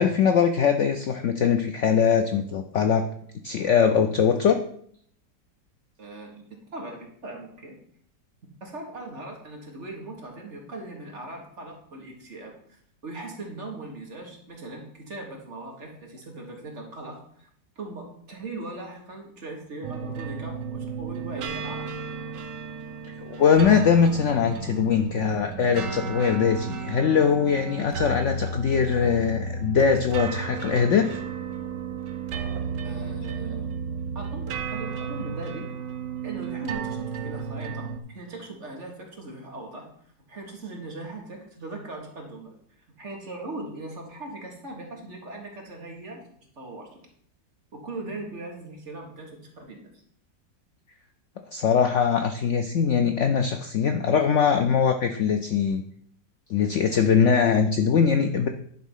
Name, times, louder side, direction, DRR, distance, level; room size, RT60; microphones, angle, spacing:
voice 1, 0.0-3.1 3.4-4.6 23.2-31.2 51.5-55.8 56.5-58.5, left 7 dB, 85° left, 7 dB, 0.6 m, -22 dB
voice 2, 6.0-6.5 6.7-7.8 8.6-12.5 13.0-17.5 17.7-22.1 32.8-33.7 34.1-35.7 36.2-39.9 40.3-42.5 43.0-46.9 47.7-49.9, right 2 dB, 40° right, 0 dB, 1.8 m, -39 dB
sound 1, 19.8-38.0, right 5 dB, 75° right, 1.4 m, -33 dB
10.5 x 3.7 x 5.5 m, 0.63 s
omnidirectional pair, 2.0 m